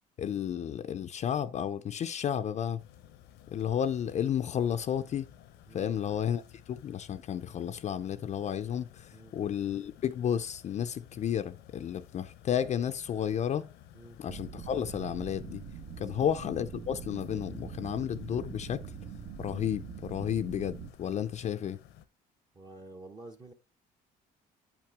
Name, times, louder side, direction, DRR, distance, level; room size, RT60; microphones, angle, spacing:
voice 1, 0.2-2.8 3.5-5.3 5.7-13.7 14.2-15.6 16.0-18.8 19.4-21.8, left 9 dB, 45° left, 0.4 m, -32 dB
sound 1, 2.8-22.1, left 11 dB, 85° left, 0.7 m, -55 dB
sound 2, 14.3-20.9, right 6 dB, 60° right, 1.2 m, -43 dB
voice 2, 22.5-23.5, right 2 dB, 25° right, 0.7 m, -49 dB
8.5 x 5.9 x 3.4 m
cardioid pair, 110°, 17 cm